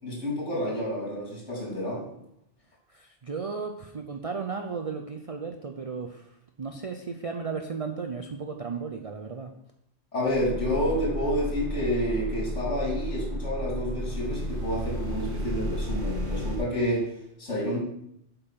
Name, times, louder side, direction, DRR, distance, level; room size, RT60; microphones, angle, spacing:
voice 1, 0.0-2.0 10.1-17.1 17.4-17.8, equal, 80° left, -3 dB, 3.4 m, -29 dB
voice 2, 2.9-9.5, right 5 dB, 40° right, 4 dB, 0.6 m, -35 dB
sound 1, 10.3-16.6, equal, 65° right, 1.7 m, -32 dB
8.2 x 5.6 x 5.6 m, 0.76 s
omnidirectional pair, 1.2 m